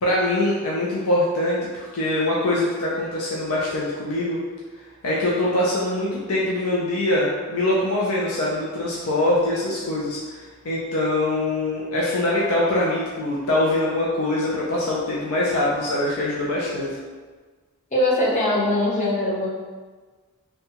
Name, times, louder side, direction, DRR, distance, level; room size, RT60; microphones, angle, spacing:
voice 1, 0.0-4.4 5.0-16.9, left 1 dB, 80° left, -5 dB, 0.5 m, -23 dB
voice 2, 17.9-19.5, left 1 dB, 30° left, -5 dB, 0.6 m, -21 dB
2.7 x 2.2 x 2.8 m, 1.4 s
head